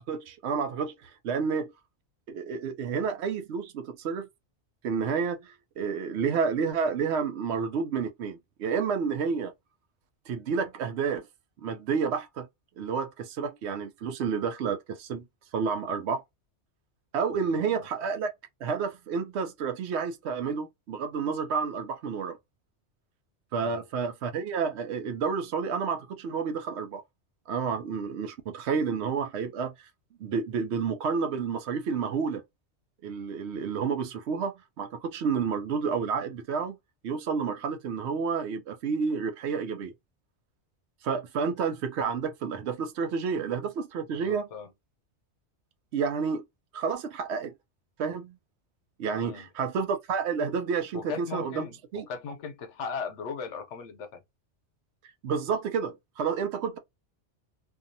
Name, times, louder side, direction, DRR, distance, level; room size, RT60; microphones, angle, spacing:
voice 1, 0.0-1.7 2.3-4.3 4.8-9.5 10.3-11.2 11.6-12.5 12.8-15.2 15.5-16.2 17.1-18.3 18.6-22.4 23.5-27.0 27.5-29.9 30.2-32.4 33.0-36.8 37.0-39.9 41.0-44.5 45.9-46.4 46.7-47.5 48.0-48.4 49.0-51.6 51.9-52.1 55.2-56.8, right 6 dB, 75° right, 0.8 m, -30 dB
voice 2, 17.3-17.9 23.5-23.8 44.1-44.7 49.1-49.5 50.9-54.2, left 5 dB, 90° left, 1.0 m, -38 dB
2.6 x 2.3 x 2.6 m
omnidirectional pair, 1.2 m